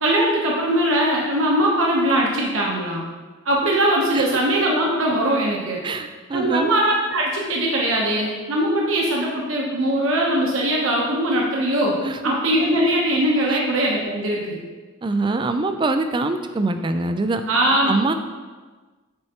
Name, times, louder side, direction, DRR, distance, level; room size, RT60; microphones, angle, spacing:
voice 1, 0.0-3.0 3.4-5.8 6.3-12.0 12.2-14.6 17.5-18.0, right 1 dB, 70° right, -2 dB, 0.9 m, -21 dB
voice 2, 5.8-6.7 12.0-12.3 13.5-13.6 15.0-17.4 17.9-18.1, right 2 dB, 20° right, 8 dB, 0.3 m, -24 dB
8.6 x 4.4 x 2.9 m, 1.4 s
head